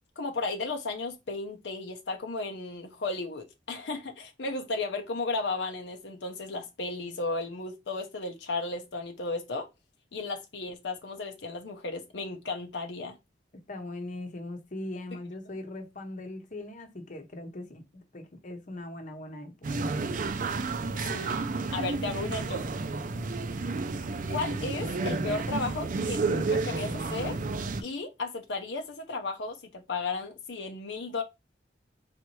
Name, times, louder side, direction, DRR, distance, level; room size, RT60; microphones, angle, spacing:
voice 1, 0.2-9.7 10.1-13.2 21.1-21.4 21.7-22.6 24.3-27.4 27.8-31.2, left 3 dB, 80° left, 0.7 m, -34 dB
voice 2, 13.7-19.8, left 2 dB, 45° left, 0.9 m, -40 dB
sound 1, 19.6-27.8, right 3 dB, 50° right, 0.5 m, -31 dB
4.2 x 3.3 x 3.1 m
head